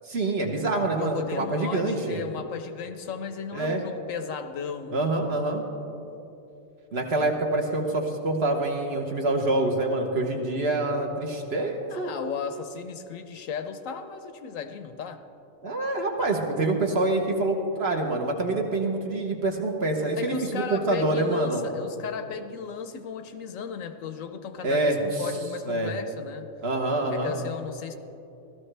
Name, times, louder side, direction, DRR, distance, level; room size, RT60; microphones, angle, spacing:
voice 1, 0.1-2.2 3.5-3.8 4.9-5.6 6.9-12.1 15.6-21.6 24.6-25.0 25.7-25.9 26.6-27.3, right 2 dB, 50° right, 2 dB, 1.3 m, -26 dB
voice 2, 1.0-5.3 11.9-15.2 20.2-26.5 27.1-27.9, left 6 dB, 75° left, 8 dB, 1.0 m, -35 dB
15.5 x 13.0 x 3.3 m, 2.9 s
omnidirectional pair, 1.5 m